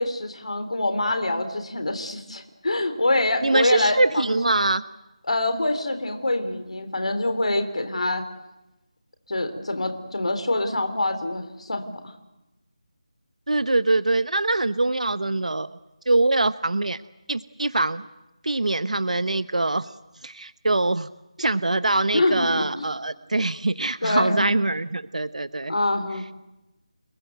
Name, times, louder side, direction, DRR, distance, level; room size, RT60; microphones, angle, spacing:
voice 1, 0.0-4.3 5.3-8.2 9.3-11.8 22.1-22.9 24.0-24.5 25.7-26.2, left 2 dB, 65° left, 7 dB, 3.4 m, -25 dB
voice 2, 3.4-4.8 13.5-15.8 16.1-17.0 17.3-18.1 18.4-19.9 20.2-21.1 21.4-25.7, right 2 dB, 80° right, 13 dB, 1.0 m, -23 dB
29.5 x 20.5 x 8.0 m, 0.96 s
figure-of-eight pair, 180°, 4 cm